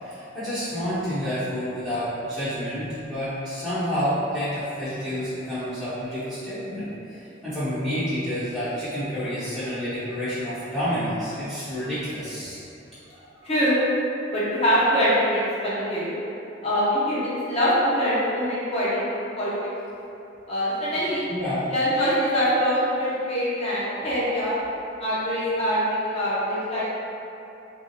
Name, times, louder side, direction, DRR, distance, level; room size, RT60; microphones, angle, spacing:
voice 1, 0.0-12.6 13.0-13.4 21.3-21.6, equal, 5° left, -17 dB, 0.9 m, -29 dB
voice 2, 13.4-13.8 14.3-16.1 16.6-19.1 19.3-19.5 20.5-21.2 21.7-24.6 25.0-27.0, equal, 35° left, -10 dB, 1.0 m, -23 dB
3.3 x 2.7 x 3.1 m, 2.9 s
head